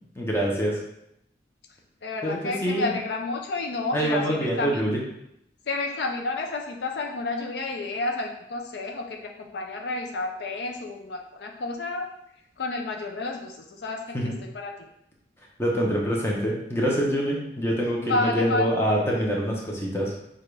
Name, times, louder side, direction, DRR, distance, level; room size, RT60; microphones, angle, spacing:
voice 1, 0.2-0.8 2.2-3.0 3.9-5.0 14.1-14.4 15.6-20.1, equal, 15° left, -3 dB, 0.8 m, -25 dB
voice 2, 2.0-4.9 5.7-12.1 12.6-14.8 18.0-18.7, left 3 dB, 65° left, 2 dB, 0.5 m, -30 dB
6.5 x 2.5 x 3.3 m, 0.79 s
head